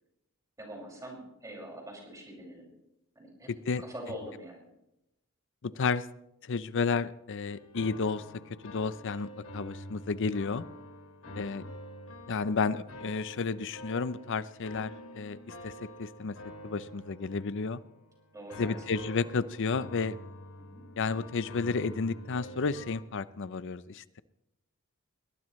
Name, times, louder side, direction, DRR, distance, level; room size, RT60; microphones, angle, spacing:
voice 1, 0.6-2.7 3.2-3.5 3.8-4.7 11.2-11.6 18.3-18.8 20.6-20.8, equal, 15° right, -1 dB, 5.7 m, -44 dB
voice 2, 5.6-6.1 6.4-10.6 11.4-11.6 12.3-15.4 15.6-16.3 16.6-17.8 18.6-20.2 21.0-24.2, left 4 dB, 60° left, 15 dB, 0.6 m, -32 dB
sound 1, 7.4-23.0, left 1 dB, 85° left, 2.4 m, -47 dB
22.0 x 19.5 x 3.2 m, 0.86 s
head